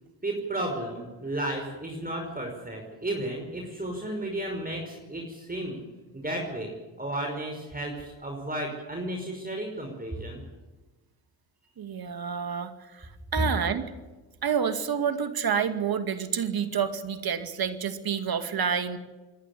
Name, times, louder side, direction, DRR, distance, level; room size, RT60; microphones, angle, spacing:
voice 1, 0.2-5.8 6.1-10.4, right 1 dB, 20° right, 1 dB, 5.4 m, -33 dB
voice 2, 11.8-13.9 14.4-19.0, right 7 dB, 50° right, 9 dB, 2.2 m, -29 dB
27.0 x 11.0 x 10.0 m, 1.2 s
supercardioid pair, 60°, 45 cm